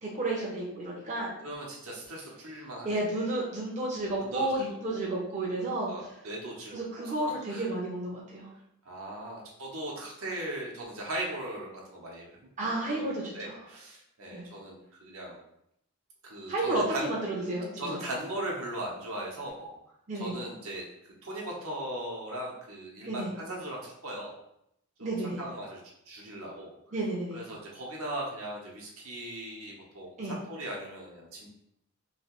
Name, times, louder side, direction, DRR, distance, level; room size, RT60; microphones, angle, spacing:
voice 1, 0.0-1.3 2.8-5.9 6.7-8.5 12.6-13.6 14.3-14.4 16.5-17.2 17.5-18.0 20.1-20.4 23.1-23.3 25.0-25.4 26.9-27.4 30.2-30.3, right 2 dB, 30° right, -5 dB, 0.6 m, -32 dB
voice 2, 1.4-3.3 4.2-5.0 5.9-7.1 7.5-7.7 8.8-15.4 16.2-17.1 17.8-19.7 20.1-24.3 25.0-25.8 26.1-26.7 27.3-31.5, right 1 dB, 70° right, -2 dB, 0.9 m, -39 dB
3.1 x 2.7 x 2.9 m, 0.76 s
head